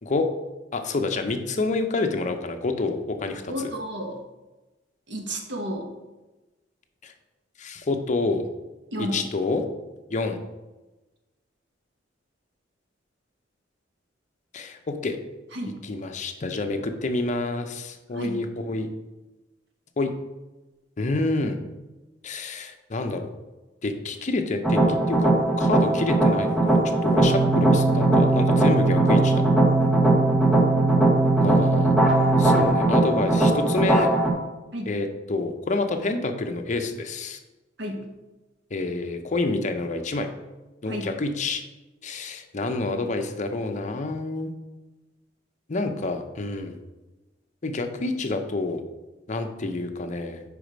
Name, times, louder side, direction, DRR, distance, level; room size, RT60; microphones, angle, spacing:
voice 1, 0.7-3.7 7.0-7.1 7.6-8.4 9.0-9.6 10.1-10.4 14.5-15.2 15.8-18.9 20.0-20.1 21.0-21.6 22.2-23.2 23.8-29.4 31.4-31.9 32.3-34.1 34.9-37.4 38.7-40.3 40.8-41.6 42.0-44.5 45.7-46.8 47.6-48.8 49.3-50.4, left 3 dB, 40° left, 6 dB, 0.6 m, -28 dB
voice 2, 3.5-4.2 5.1-5.9 8.9-9.2 15.5-15.8 18.1-18.4 34.7-34.9 37.8-38.1 40.9-41.1, equal, 70° right, 3 dB, 1.1 m, -31 dB
sound 1, 24.6-34.3, right 2 dB, ahead, 1.0 m, -21 dB
sound 2, 27.2-32.7, right 3 dB, 20° right, 0.6 m, -23 dB
5.1 x 4.8 x 5.0 m, 1.1 s
head